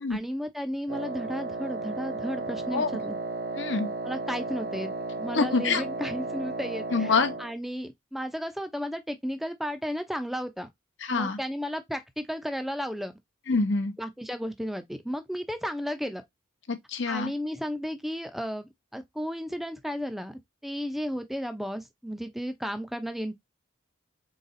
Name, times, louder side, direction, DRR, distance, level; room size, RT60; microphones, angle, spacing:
voice 1, 0.1-3.2 4.0-10.7 11.1-13.1 14.0-16.2 17.1-23.3, equal, ahead, 0.5 m, -34 dB
Wind instrument woodwind instrument, 0.9-7.5, right 3 dB, 45° right, 0.6 m, -34 dB
voice 2, 3.5-3.9 5.3-5.8 6.9-7.4 11.0-11.4 13.5-13.9 16.7-17.3, left 4 dB, 60° left, 0.8 m, -26 dB
4.0 x 4.0 x 2.6 m
head